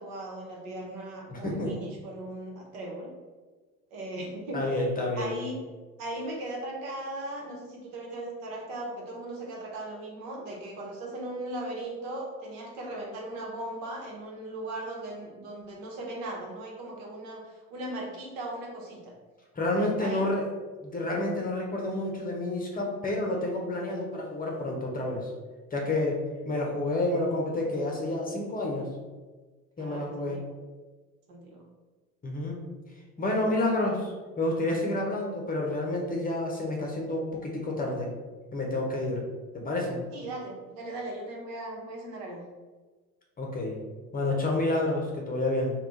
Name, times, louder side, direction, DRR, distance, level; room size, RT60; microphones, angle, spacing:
voice 1, 0.0-3.1 3.9-4.9 5.2-5.5 6.0-19.1 19.8-20.3 29.8-30.5 31.3-31.6 40.1-42.4, right 1 dB, 60° right, -2 dB, 1.1 m, -38 dB
voice 2, 1.3-1.7 4.5-5.3 19.5-20.5 20.8-25.3 25.7-28.9 29.8-30.4 32.2-32.6 33.2-38.1 38.5-39.2 39.5-40.0 43.4-43.8 44.1-45.7, left 2 dB, 20° left, -1 dB, 0.8 m, -29 dB
3.4 x 2.3 x 3.9 m, 1.3 s
hypercardioid pair, 65°, 42 cm